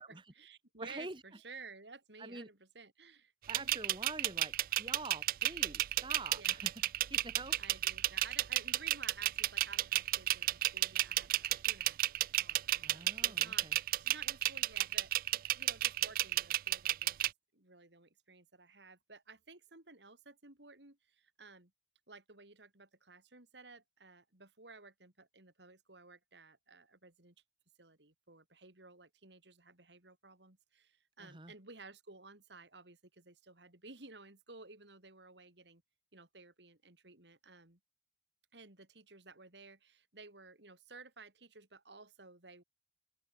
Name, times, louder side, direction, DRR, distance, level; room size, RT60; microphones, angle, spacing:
voice 1, 0.0-3.8 6.3-6.6 7.6-21.7 22.1-27.3 27.8-35.8 36.1-37.8 38.5-42.6, right 4 dB, 75° right, 4.1 m, -55 dB
voice 2, 0.8-1.2 2.2-2.5 3.5-6.7 7.1-7.6 12.8-13.8 31.2-31.5, right 2 dB, 25° right, 2.2 m, -46 dB
sound 1, 3.5-17.3, right 14 dB, 50° right, 0.4 m, -32 dB
open air
head